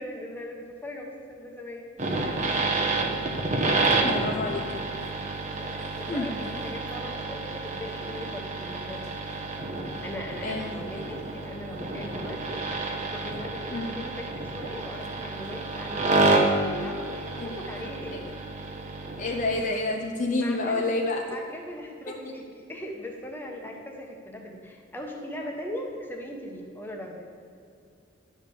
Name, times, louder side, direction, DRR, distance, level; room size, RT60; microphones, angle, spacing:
voice 1, 0.0-1.9 5.5-9.1 10.0-18.3 20.4-21.0 21.3-27.3, left 1 dB, 10° left, 0 dB, 1.3 m, -39 dB
sound 1, 2.0-19.6, right 2 dB, 40° right, 1.1 m, -29 dB
voice 2, 4.0-5.2 6.1-6.3 10.4-10.8 13.7-14.0 17.4-17.5 18.1-18.2 19.2-21.3, left 2 dB, 45° left, 1 dB, 0.7 m, -29 dB
11.5 x 5.3 x 7.1 m, 2.4 s
head